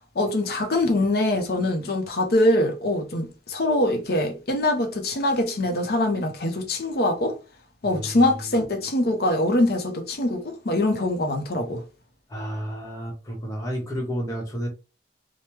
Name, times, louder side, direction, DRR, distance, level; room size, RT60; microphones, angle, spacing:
voice 1, 0.2-7.3 7.8-11.8, left 1 dB, 55° left, 0.6 m, -23 dB
voice 2, 7.8-8.6 12.3-14.7, equal, 15° left, 0.9 m, -32 dB
3.3 x 2.1 x 3.0 m
head